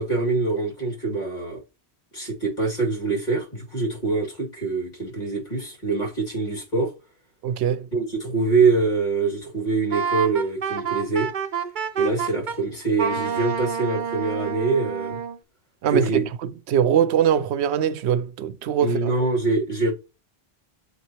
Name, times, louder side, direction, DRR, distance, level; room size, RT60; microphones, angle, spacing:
voice 1, 0.0-1.6 2.1-6.9 7.9-11.3 12.0-15.2 15.9-16.3 18.8-19.9, right 3 dB, 45° left, 2.8 m, -24 dB
voice 2, 7.4-7.9 15.8-16.3 16.7-19.1, right 9 dB, 85° right, 0.8 m, -22 dB
Wind instrument woodwind instrument, 9.9-12.6 13.0-15.4, right 7 dB, 50° right, 0.8 m, -28 dB
8.3 x 4.1 x 3.0 m
omnidirectional pair, 1.1 m